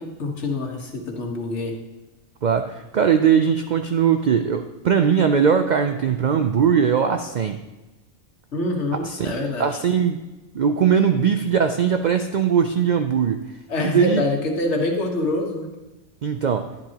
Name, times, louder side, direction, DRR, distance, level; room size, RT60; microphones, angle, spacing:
voice 1, 0.0-1.7 8.5-9.8 13.7-15.7, left 2 dB, 65° left, 1 dB, 1.6 m, -25 dB
voice 2, 2.4-7.6 9.0-10.2 10.5-13.4 13.8-14.2 16.2-16.7, right 7 dB, 65° right, 7 dB, 0.4 m, -20 dB
10.5 x 10.5 x 2.9 m, 1.1 s
omnidirectional pair, 1.3 m